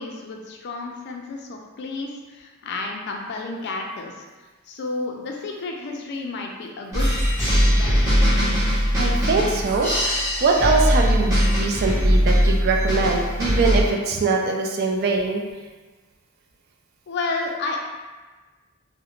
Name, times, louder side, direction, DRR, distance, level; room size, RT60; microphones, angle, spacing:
voice 1, 0.0-4.1 4.7-7.2 7.5-8.2 17.1-17.8, left 3 dB, 50° left, 1 dB, 0.3 m, -31 dB
sound 1, 6.9-13.8, equal, 15° right, 0.8 m, -20 dB
voice 2, 9.0-15.4, right 4 dB, 45° right, 2 dB, 0.3 m, -22 dB
3.0 x 2.0 x 2.4 m, 1.3 s
head